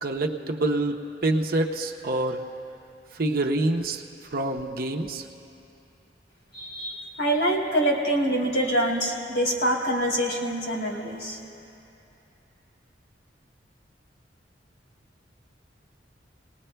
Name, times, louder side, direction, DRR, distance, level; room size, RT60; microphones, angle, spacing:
voice 1, 0.0-2.4 3.2-4.0 4.3-5.2, right 2 dB, 55° right, 2 dB, 0.8 m, -26 dB
voice 2, 6.5-11.4, right 1 dB, 70° left, -4 dB, 3.1 m, -25 dB
29.0 x 19.5 x 2.3 m, 2.9 s
head